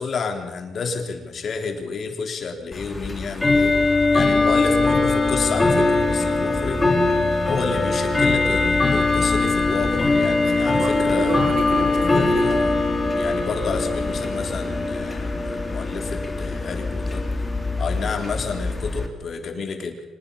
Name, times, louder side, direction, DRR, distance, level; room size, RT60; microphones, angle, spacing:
voice 1, 0.0-3.7 4.1-6.8 7.5-11.4 12.4-12.6 13.1-17.3 17.8-20.0, left 5 dB, 50° left, 4 dB, 3.9 m, -30 dB
Bell / Tick-tock, 2.7-19.1, left 3 dB, 20° left, 3.6 m, -21 dB
voice 2, 10.4-12.7 17.9-18.1, right 5 dB, 70° right, 6 dB, 3.5 m, -31 dB
25.0 x 20.0 x 7.2 m, 1.1 s
cardioid pair, 90°, 0 cm